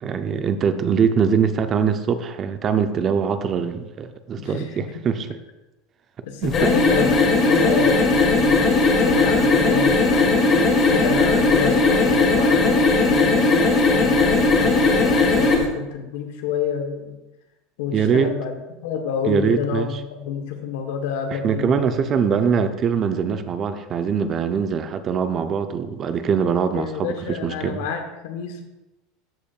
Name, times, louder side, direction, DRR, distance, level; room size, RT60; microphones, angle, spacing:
voice 1, 0.0-5.4 6.4-6.7 17.9-18.3 19.2-20.0 21.3-27.8, right 6 dB, 35° right, 9 dB, 0.6 m, -22 dB
voice 2, 6.2-12.8 13.1-17.1 17.8-18.5 18.8-21.9 26.5-28.6, left 6 dB, 75° left, 4 dB, 1.2 m, -29 dB
sound 1, 6.4-15.6, left 3 dB, 35° left, 2.2 m, -18 dB
13.5 x 5.1 x 2.4 m, 1.0 s
supercardioid pair, 125°, 0 cm